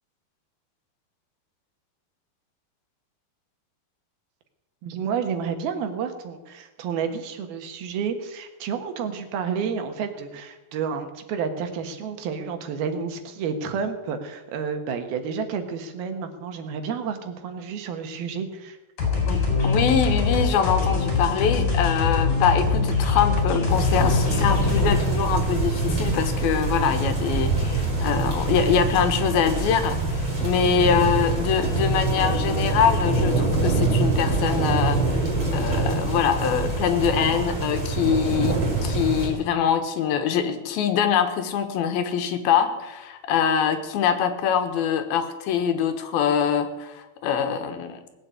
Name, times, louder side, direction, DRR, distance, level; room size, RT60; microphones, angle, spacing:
voice 1, 4.8-18.8, right 6 dB, 85° right, 7 dB, 3.3 m, -30 dB
sound 1, 19.0-25.0, left 4 dB, 65° left, 5.9 m, -23 dB
voice 2, 19.3-35.0 35.5-48.0, left 7 dB, 85° left, 8 dB, 3.2 m, -24 dB
sound 2, 23.7-39.3, right 3 dB, 35° right, 5.5 m, -24 dB
19.0 x 8.2 x 8.4 m, 1.1 s
omnidirectional pair, 4.2 m